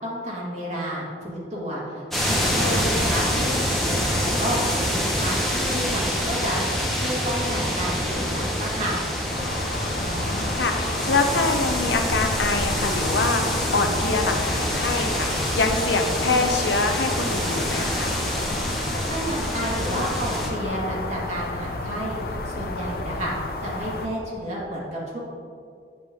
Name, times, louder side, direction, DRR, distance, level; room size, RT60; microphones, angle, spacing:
voice 1, 0.0-3.6 4.0-4.6 4.9-6.6 6.9-9.0 19.0-22.2 22.4-23.3 23.6-25.2, equal, 40° right, -5 dB, 1.7 m, -31 dB
sound 1, 2.1-20.5, equal, ahead, 1.1 m, -26 dB
sound 2, 9.3-24.1, left 2 dB, 55° left, 0.6 m, -31 dB
voice 2, 10.0-18.1, left 3 dB, 85° left, 5 dB, 0.8 m, -25 dB
8.3 x 7.6 x 3.6 m, 2.3 s
head